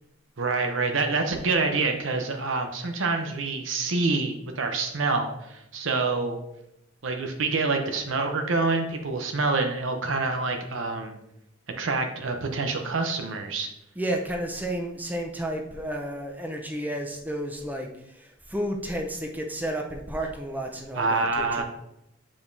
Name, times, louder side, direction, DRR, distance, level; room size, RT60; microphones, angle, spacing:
voice 1, 0.4-6.4 7.0-11.2 11.8-13.7 20.9-21.6, right 3 dB, 75° right, 4 dB, 0.7 m, -26 dB
voice 2, 13.9-21.6, right 1 dB, 10° right, 2 dB, 0.7 m, -32 dB
7.3 x 5.1 x 2.7 m, 0.83 s
head